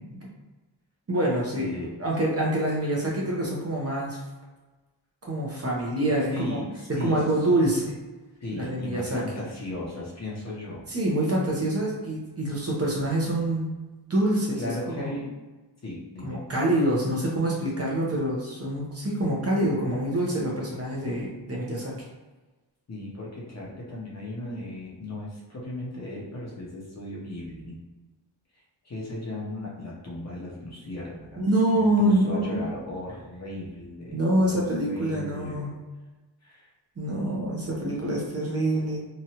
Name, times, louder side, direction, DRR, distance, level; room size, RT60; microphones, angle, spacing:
voice 1, 1.1-1.7 2.0-4.2 5.2-6.6 6.9-7.9 8.5-9.2 10.9-13.7 14.1-15.1 16.2-21.9 31.4-32.7 34.1-35.7 37.0-39.0, right 1 dB, 35° right, -4 dB, 0.7 m, -26 dB
voice 2, 1.6-2.0 6.1-7.5 8.4-10.9 14.5-15.3 15.8-16.4 22.9-27.8 28.5-35.7 36.4-36.7, left 1 dB, 35° left, -4 dB, 0.7 m, -36 dB
2.9 x 2.4 x 2.8 m, 1.2 s
wide cardioid pair, 145°, 45 cm